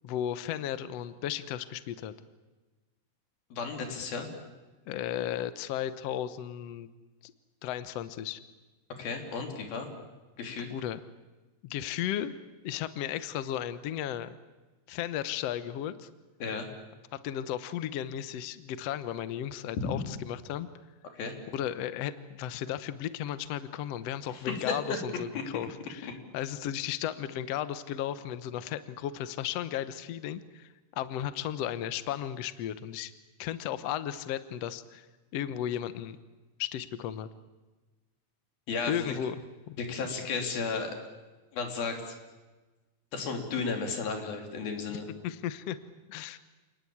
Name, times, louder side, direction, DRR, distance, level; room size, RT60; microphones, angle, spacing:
voice 1, 0.0-2.1 4.9-6.9 7.2-7.3 7.6-8.4 10.7-11.0 11.6-12.4 12.6-14.3 14.9-16.1 17.1-20.7 21.5-33.1 33.4-35.1 35.3-36.2 36.6-37.3 38.9-39.4 39.7-39.8 44.9-45.8 46.1-46.4, left 11 dB, 65° left, 13 dB, 1.6 m, -35 dB
voice 2, 3.5-4.3 9.0-9.9 10.4-10.7 16.4-16.7 19.8-20.0 21.1-21.3 24.3-24.7 26.0-26.1 38.7-39.1 39.8-41.0 41.5-42.1 43.1-45.0, left 4 dB, 85° left, 4 dB, 4.9 m, -33 dB
28.5 x 19.5 x 8.6 m, 1.2 s
omnidirectional pair, 4.1 m